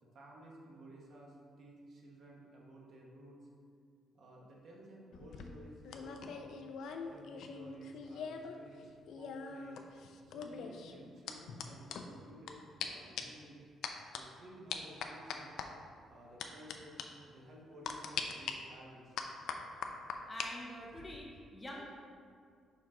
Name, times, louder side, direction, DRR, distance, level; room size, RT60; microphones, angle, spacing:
voice 1, 0.0-3.4 4.1-6.5 7.1-9.8 10.2-13.6 14.1-15.5 16.1-19.1, right 1 dB, 45° right, -2 dB, 1.0 m, -55 dB
sound 1, 5.1-8.5 8.8-12.5 12.8-12.9 13.2-13.4 13.8-14.2 14.7-15.7 16.4-16.7 17.0-17.1 17.9-18.5 19.2-20.5 20.8-21.2, left 6 dB, 65° left, 0.4 m, -42 dB
voice 2, 20.3-21.9, equal, 10° left, -2 dB, 0.6 m, -46 dB
5.7 x 4.5 x 3.7 m, 2.2 s
cardioid pair, 175°, 0 cm